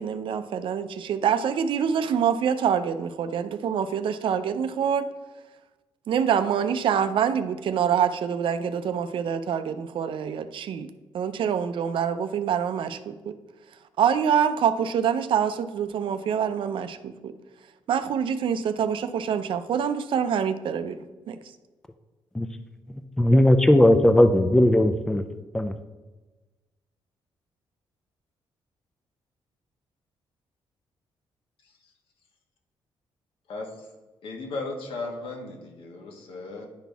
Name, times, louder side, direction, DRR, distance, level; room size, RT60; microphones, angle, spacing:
voice 1, 0.0-5.1 6.1-13.4 14.0-17.3 17.9-21.4, right 8 dB, 65° right, 11 dB, 0.5 m, -26 dB
voice 2, 23.2-25.2 25.5-25.7, left 1 dB, 5° left, 9 dB, 0.4 m, -18 dB
voice 3, 33.5-33.9 34.2-36.7, left 3 dB, 75° left, 0 dB, 1.5 m, -36 dB
10.5 x 4.2 x 3.5 m, 1.2 s
cardioid pair, 115°, 9 cm